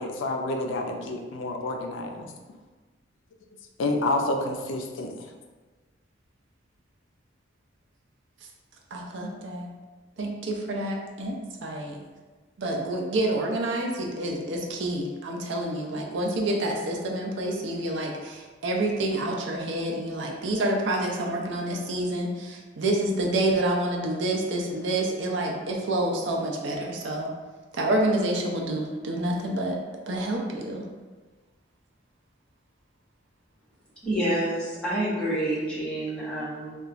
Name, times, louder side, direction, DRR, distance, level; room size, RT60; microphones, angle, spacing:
voice 1, 0.0-2.3 3.8-5.3, left 2 dB, 80° left, 3 dB, 0.4 m, -29 dB
voice 2, 8.9-9.7 10.2-11.4 11.6-12.0 12.6-27.3 27.7-29.8 30.1-30.9, right 1 dB, 65° right, 0 dB, 0.4 m, -28 dB
voice 3, 34.0-36.8, right 1 dB, 5° left, -10 dB, 0.8 m, -28 dB
2.9 x 2.3 x 2.5 m, 1.3 s
head